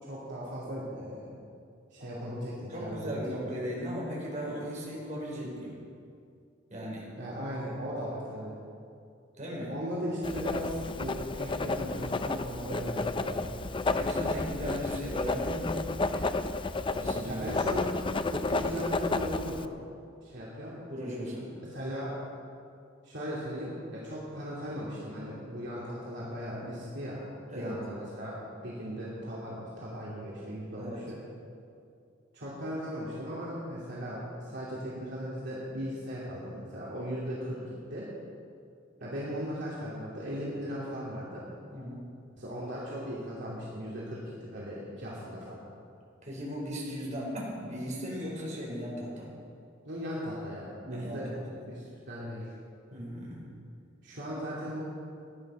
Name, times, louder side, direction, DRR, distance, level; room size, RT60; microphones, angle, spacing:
voice 1, 0.0-1.4 1.9-3.2 7.2-8.6 9.6-13.6 17.3-17.9 18.3-19.8 20.2-20.7 21.7-22.2 23.0-27.2 27.5-31.2 32.3-38.1 39.0-41.4 42.4-45.7 49.8-51.3 51.6-52.4 54.0-54.8, equal, 65° right, -7 dB, 2.9 m, -37 dB
voice 2, 2.7-5.8 6.7-7.1 9.4-9.7 13.4-13.6 13.9-15.8 16.1-16.4 17.0-17.4 20.9-21.5 27.5-27.8 30.8-31.0 41.7-42.0 46.2-49.4 50.9-51.6 52.9-53.4, equal, 40° right, -4 dB, 4.6 m, -37 dB
Writing, 10.2-19.7, left 3 dB, 25° left, 0.5 m, -32 dB
15.0 x 11.0 x 6.3 m, 2.4 s
head